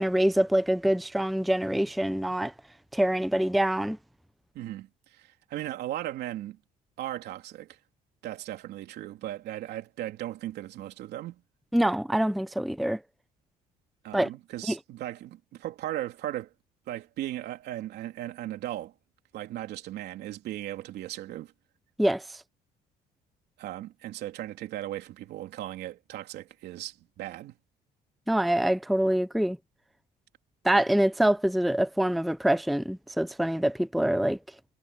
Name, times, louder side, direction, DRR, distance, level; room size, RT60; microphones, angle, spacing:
voice 1, 0.0-2.5 2.9-4.0 11.7-13.0 14.1-14.3 14.7-14.8 22.0-22.4 28.3-29.6 30.6-34.4, right 1 dB, ahead, 0.5 m, -25 dB
voice 2, 4.5-6.6 7.0-7.8 8.2-11.4 14.0-16.5 16.9-18.9 19.3-21.5 23.6-27.5, right 14 dB, 75° right, 3.3 m, -37 dB
cardioid pair, 110°, 17 cm